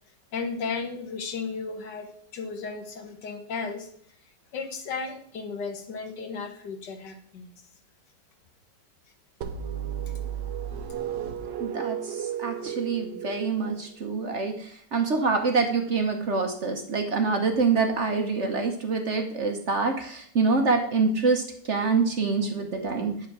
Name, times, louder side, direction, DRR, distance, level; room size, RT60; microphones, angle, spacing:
voice 1, 0.3-3.9 4.5-7.5, left 4 dB, 75° left, 5 dB, 1.9 m, -34 dB
sound 1, 9.4-14.1, right 9 dB, 85° right, 1.5 m, -33 dB
voice 2, 11.6-23.3, right 4 dB, 50° right, 5 dB, 1.0 m, -26 dB
8.8 x 5.8 x 6.0 m, 0.64 s
omnidirectional pair, 1.9 m